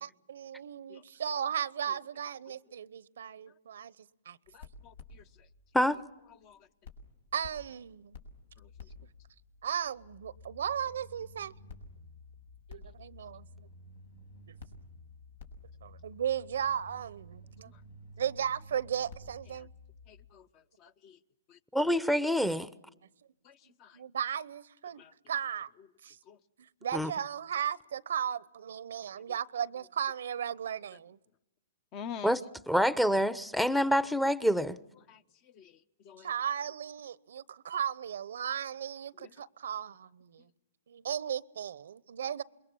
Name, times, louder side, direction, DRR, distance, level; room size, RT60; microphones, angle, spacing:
voice 1, 0.0-3.9 4.3-4.4 7.3-8.2 9.6-11.5 12.7-13.5 14.5-14.6 15.8-17.7 18.2-19.7 23.9-25.7 26.0-26.2 26.8-31.2 36.2-40.5 40.9-42.4, right 8 dB, 75° right, 0.9 m, -36 dB
sound 1, 4.5-6.5 6.8-20.3, left 2 dB, 85° left, 5.6 m, -52 dB
voice 2, 4.5-5.5 6.4-6.7 8.6-8.7 17.7-17.8 19.6-19.7 20.1-21.2 23.4-24.0 25.0-25.1 26.3-26.4 31.9-32.3 32.9-33.0 35.1-36.3 39.2-39.3, left 7 dB, 35° left, 1.0 m, -48 dB
voice 3, 21.7-22.7 26.9-27.1 32.2-32.4 32.7-34.8, equal, ahead, 0.9 m, -26 dB
27.5 x 22.0 x 7.2 m
hypercardioid pair, 135°, 0 cm